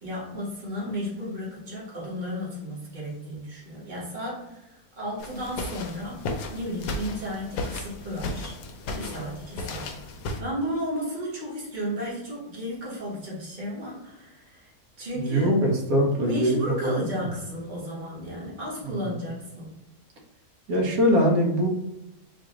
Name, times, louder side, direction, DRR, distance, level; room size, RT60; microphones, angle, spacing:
voice 1, 0.0-6.2 6.5-8.5 8.9-10.0 10.4-14.7 15.0-15.5 16.2-19.8, equal, 35° right, -5 dB, 1.4 m, -33 dB
sound 1, 5.2-10.4, left 2 dB, 75° left, 1.0 m, -34 dB
voice 2, 15.1-17.3 18.8-19.1 20.7-21.7, equal, 70° right, 0 dB, 1.3 m, -23 dB
4.1 x 2.4 x 3.0 m, 0.93 s
omnidirectional pair, 1.6 m